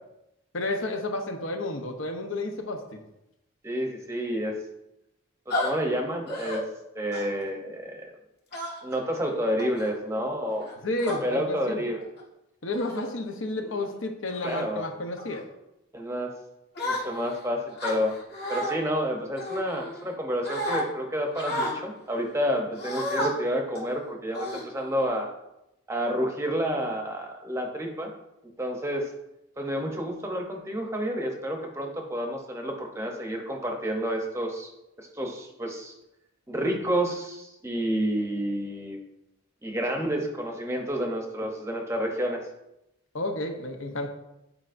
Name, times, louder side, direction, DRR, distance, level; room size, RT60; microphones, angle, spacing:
voice 1, 0.5-3.0 10.8-11.8 12.6-15.4 43.1-44.1, left 2 dB, 70° left, 5 dB, 0.8 m, -31 dB
voice 2, 3.6-4.6 5.5-6.6 6.9-8.1 8.8-10.7 11.2-12.0 14.4-14.8 15.9-16.3 16.8-18.1 18.5-25.3 25.9-28.1 28.6-29.1 29.6-34.7 35.0-35.9 36.5-39.0 39.6-42.5, equal, 15° right, 2 dB, 0.7 m, -29 dB
sound 1, 5.5-5.7 6.3-6.6 7.1-7.4 8.5-9.0 9.6-9.9 10.6-11.2 12.0-12.2 12.7-13.1 13.6-13.8 14.3-14.6 15.2-15.4 16.8-17.4 17.8-18.7 19.4-20.1 20.4-20.8 21.4-21.8 22.8-23.3 23.8-23.9 24.3-25.0, left 1 dB, 50° left, 1.4 m, -32 dB
8.9 x 4.8 x 2.5 m, 0.89 s
head